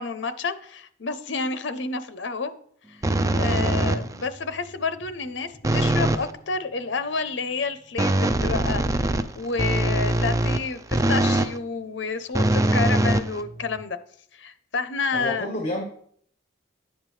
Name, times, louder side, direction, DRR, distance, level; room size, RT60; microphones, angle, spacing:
voice 1, 0.0-2.5 2.9-3.0 3.3-14.0 14.4-15.5, left 4 dB, 65° left, 11 dB, 0.7 m, -29 dB
sound 1, 3.0-4.3 5.6-6.3 8.0-11.6 12.3-13.8, right 2 dB, 15° right, 0.3 m, -22 dB
voice 2, 3.7-4.0 15.1-15.8, left 1 dB, 35° left, 1 dB, 1.3 m, -30 dB
10.5 x 7.3 x 3.2 m, 0.62 s
head